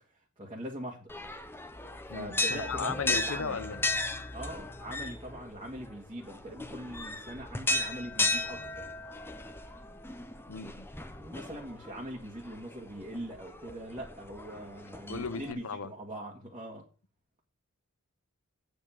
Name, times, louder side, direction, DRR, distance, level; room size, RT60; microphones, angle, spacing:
voice 1, 0.4-1.1 2.1-3.6 4.3-8.8 11.2-16.8, right 1 dB, 25° right, 1.6 m, -42 dB
sound 1, 1.1-15.5, left 2 dB, 10° left, 0.8 m, -36 dB
voice 2, 2.1-3.9 10.5-10.9 15.1-15.9, left 5 dB, 70° left, 0.8 m, -36 dB
8.5 x 5.2 x 7.2 m
head